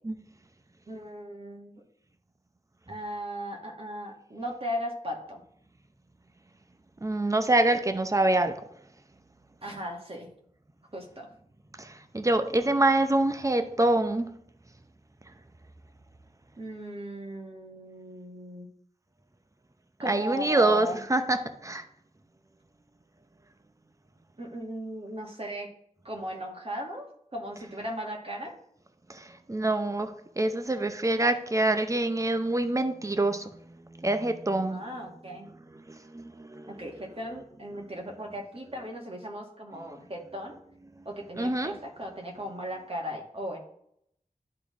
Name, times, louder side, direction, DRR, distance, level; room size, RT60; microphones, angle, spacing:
voice 1, 0.9-1.8 2.9-5.4 9.6-10.3 10.9-11.3 16.6-18.7 20.0-21.0 24.4-25.7 26.0-28.5 34.7-35.5 36.7-40.5 41.0-43.6, equal, 40° right, 1.7 m, -37 dB
voice 2, 7.0-8.6 11.8-14.3 20.0-21.8 29.1-33.5 33.9-34.8 35.9-36.8 41.4-41.7, right 2 dB, 20° right, 0.7 m, -26 dB
11.5 x 3.8 x 3.7 m
wide cardioid pair, 80°, 14 cm